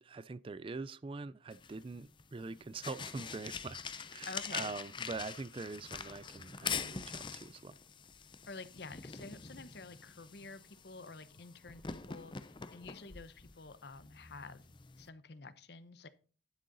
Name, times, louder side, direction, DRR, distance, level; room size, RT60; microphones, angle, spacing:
voice 1, 0.0-7.8, right 3 dB, 30° right, 0.4 m, -44 dB
sound 1, 1.5-15.1, left 6 dB, 25° left, 0.6 m, -45 dB
voice 2, 4.3-4.7 8.5-14.6 15.0-16.1, left 3 dB, 60° left, 0.8 m, -49 dB
11.5 x 6.6 x 3.9 m
head